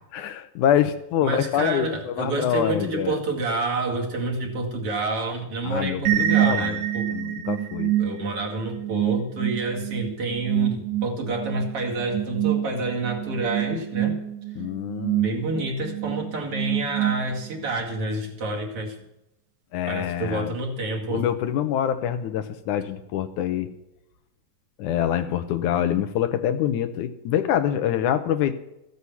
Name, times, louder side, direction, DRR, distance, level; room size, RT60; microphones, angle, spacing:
voice 1, 0.1-3.2 4.4-4.7 5.6-6.8 7.1-7.9 14.6-15.3 19.7-20.5 21.1-23.7 24.8-28.5, left 10 dB, 80° left, 10 dB, 2.4 m, -25 dB
voice 2, 1.2-7.1 8.0-14.2 15.2-19.0 19.9-21.2, right 2 dB, 50° right, 0 dB, 3.0 m, -28 dB
sound 1, 6.0-17.7, right 12 dB, 75° right, 2.9 m, -27 dB
15.0 x 8.1 x 7.0 m, 0.89 s
omnidirectional pair, 3.5 m